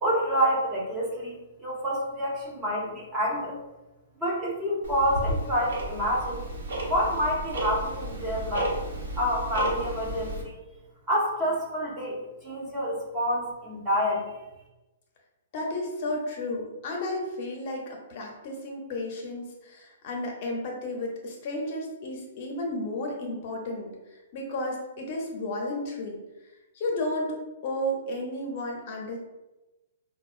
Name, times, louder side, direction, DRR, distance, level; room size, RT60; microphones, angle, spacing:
voice 1, 0.0-3.6 4.2-6.4 6.9-8.8 9.2-10.5 11.1-12.2 12.4-14.4, equal, 15° right, -4 dB, 0.6 m, -28 dB
Tick-tock, 4.8-10.4, right 1 dB, 75° right, 0.9 m, -33 dB
voice 2, 15.5-26.2 26.7-29.2, left 1 dB, 35° left, 0 dB, 0.5 m, -33 dB
4.5 x 2.1 x 2.4 m, 1.0 s
hypercardioid pair, 170°, 0 cm